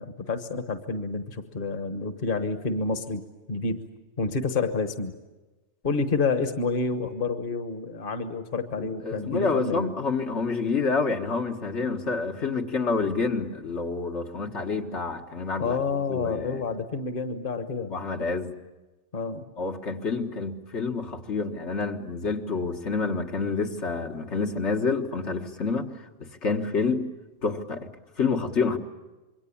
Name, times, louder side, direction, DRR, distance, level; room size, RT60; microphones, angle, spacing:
voice 1, 0.0-3.2 3.5-3.8 4.2-5.1 5.8-9.9 15.6-17.9 19.1-19.5, left 4 dB, 50° left, 9 dB, 1.4 m, -29 dB
voice 2, 8.8-16.6 17.9-18.5 19.6-27.1 27.4-27.9 28.2-28.8, left 4 dB, 80° left, 2 dB, 2.0 m, -28 dB
26.5 x 23.0 x 8.6 m, 1.2 s
omnidirectional pair, 1.2 m